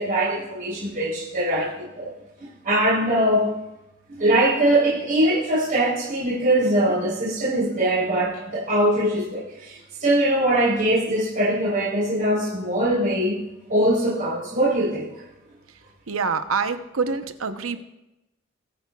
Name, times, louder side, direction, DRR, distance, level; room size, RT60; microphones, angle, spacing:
voice 1, 0.0-2.1 2.4-3.5 4.2-13.4 13.7-15.1, right 1 dB, 45° right, -8 dB, 3.6 m, -22 dB
voice 2, 16.1-17.8, right 5 dB, 85° right, 10 dB, 0.8 m, -26 dB
22.0 x 9.4 x 2.3 m, 0.93 s
head